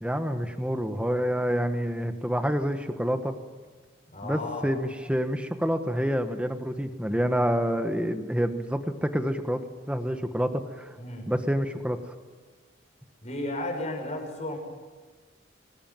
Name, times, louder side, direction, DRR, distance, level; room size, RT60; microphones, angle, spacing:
voice 1, 0.0-3.3 4.2-9.6 9.9-10.5 10.8-10.9 11.3-12.0, equal, 5° right, 7 dB, 1.4 m, -27 dB
voice 2, 4.1-4.7 11.0-11.3 13.2-14.6, left 1 dB, 40° left, 3 dB, 6.0 m, -33 dB
25.5 x 18.5 x 9.2 m, 1.4 s
head